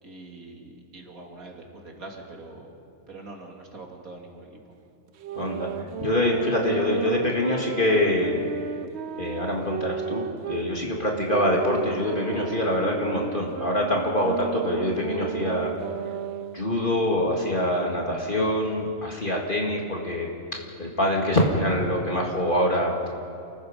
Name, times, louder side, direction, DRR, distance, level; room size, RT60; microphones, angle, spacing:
voice 1, 0.0-2.8 3.1-4.6 12.8-13.1 21.6-21.7, right 2 dB, 75° right, 0 dB, 3.1 m, -43 dB
sound 1, 5.2-10.7 11.3-16.6, right 8 dB, 60° right, 0.8 m, -33 dB
voice 2, 5.4-5.7 6.0-8.5 9.2-15.7 16.5-20.3 20.8-23.1, left 1 dB, 35° left, -1 dB, 2.3 m, -25 dB
29.0 x 19.5 x 5.2 m, 2.6 s
omnidirectional pair, 1.5 m